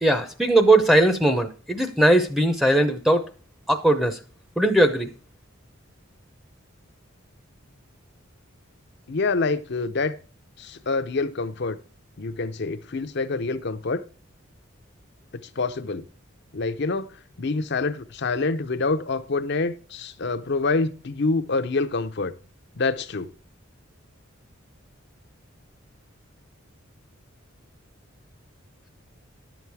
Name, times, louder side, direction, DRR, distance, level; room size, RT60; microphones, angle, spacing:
voice 1, 0.0-3.3 3.7-4.2 4.6-5.1, right 1 dB, ahead, 0.7 m, -19 dB
voice 2, 9.1-10.2 10.6-11.8 12.2-14.0 15.4-16.0 16.5-17.1 17.4-22.3 22.8-23.3, left 3 dB, 55° left, 0.7 m, -26 dB
11.0 x 7.1 x 4.7 m
head